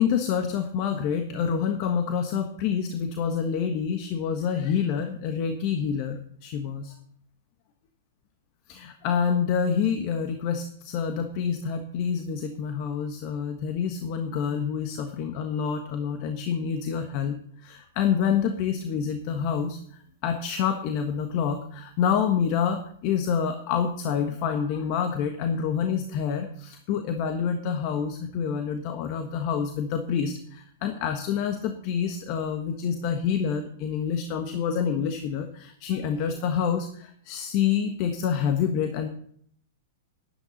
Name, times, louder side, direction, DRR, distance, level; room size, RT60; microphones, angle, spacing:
voice 1, 0.0-6.9 8.7-19.8 20.2-39.1, left 7 dB, 45° left, 7 dB, 1.3 m, -27 dB
12.0 x 11.5 x 4.1 m, 0.63 s
hypercardioid pair, 105°, 0 cm